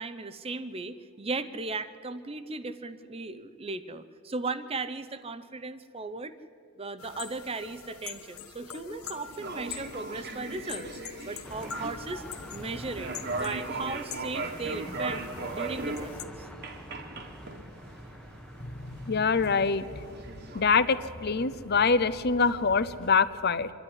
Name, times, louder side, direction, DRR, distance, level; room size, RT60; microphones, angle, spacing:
voice 1, 0.0-6.3 6.8-10.9 11.3-12.2 12.5-15.3 15.5-16.5, right 3 dB, 25° right, 12 dB, 0.7 m, -37 dB
sound 1, 7.0-16.3, left 7 dB, 75° left, 1.2 m, -44 dB
sound 2, 9.3-20.6, right 3 dB, 50° right, 1.6 m, -39 dB
sound 3, 11.4-23.2, equal, 5° left, 1.1 m, -46 dB
voice 2, 19.0-20.1 20.5-23.7, left 5 dB, 45° left, 14 dB, 0.6 m, -25 dB
25.5 x 11.5 x 9.8 m, 2.4 s
head